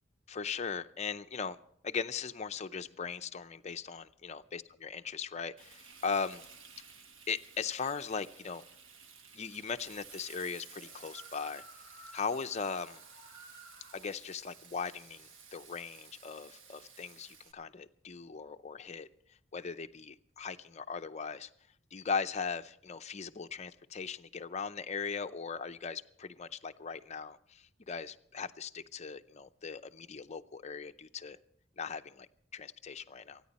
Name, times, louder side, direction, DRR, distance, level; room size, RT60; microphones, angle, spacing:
voice 1, 0.3-1.6 1.8-6.5 7.3-8.6 9.3-11.6 12.1-13.0 13.9-19.1 19.5-21.5 21.9-31.4 31.8-33.4, left 5 dB, 35° left, 9 dB, 0.5 m, -39 dB
Frying (food), 5.6-17.5, right 6 dB, 85° right, 1.2 m, -55 dB
sound 1, 10.6-14.1, right 1 dB, 60° right, 3.7 m, -55 dB
27.0 x 9.7 x 4.1 m, 0.67 s
head